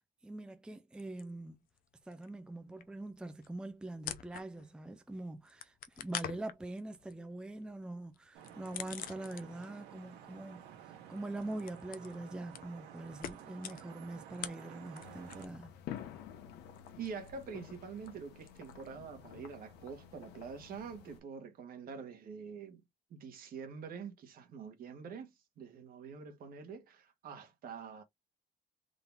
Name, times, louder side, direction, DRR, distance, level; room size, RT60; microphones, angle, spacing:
voice 1, 0.2-1.6 2.0-15.7, right 2 dB, 5° right, 0.5 m, -44 dB
sound 1, 1.0-1.8 2.1-4.8 5.1-9.8 10.1-15.7 15.9-18.9, left 10 dB, 60° left, 0.6 m, -47 dB
Vehicle horn car horn honking / Traffic noise roadway noise, 8.3-15.5, right 9 dB, 85° right, 1.5 m, -52 dB
sound 2, 15.0-21.2, left 9 dB, 80° left, 1.0 m, -50 dB
voice 2, 17.0-22.8 23.1-28.0, right 6 dB, 60° right, 1.5 m, -46 dB
3.9 x 2.8 x 3.5 m
cardioid pair, 110°, 17 cm